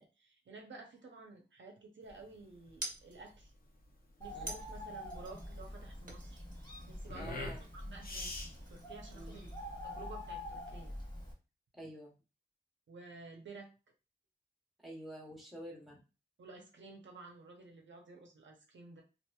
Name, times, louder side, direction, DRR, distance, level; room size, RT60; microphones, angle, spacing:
voice 1, 0.0-3.5 4.2-6.4 6.9-9.5 9.8-10.9 12.9-13.7 16.4-19.0, right 3 dB, 75° right, 2 dB, 0.6 m, -52 dB
sound 1, 0.9-1.7 2.8-3.6 4.5-5.7 6.1-7.2 7.6-8.2 8.5-9.7, right 2 dB, 45° right, 0.8 m, -49 dB
sound 2, 2.0-10.1, left 3 dB, 50° left, 0.6 m, -48 dB
Bird, 4.2-11.3, left 1 dB, 20° left, 1.0 m, -46 dB
voice 2, 7.2-7.6 9.1-9.4 11.7-12.1 14.8-16.0, right 1 dB, ahead, -2 dB, 1.0 m, -48 dB
2.8 x 2.5 x 2.2 m, 0.30 s
wide cardioid pair, 105°, 19 cm